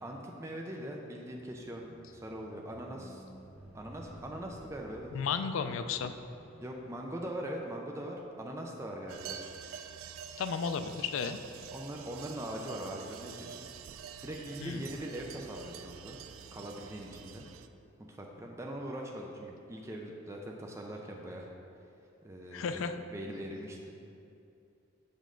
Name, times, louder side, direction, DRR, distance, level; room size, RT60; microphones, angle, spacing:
voice 1, 0.0-3.2 3.7-5.1 6.6-9.4 11.7-13.7 14.2-16.2 16.5-17.4 18.0-21.5 22.2-23.9, right 1 dB, 15° right, 0 dB, 0.4 m, -41 dB
Squeak, 1.4-7.7 8.5-8.6, right 1 dB, 50° right, 1.5 m, -54 dB
voice 2, 5.1-6.2 10.4-11.4 14.6-14.8 22.5-22.9, left 6 dB, 70° left, 10 dB, 0.3 m, -33 dB
sound 1, 9.1-17.7, right 7 dB, 80° right, 0.3 m, -47 dB
6.6 x 5.2 x 3.7 m, 2.7 s
head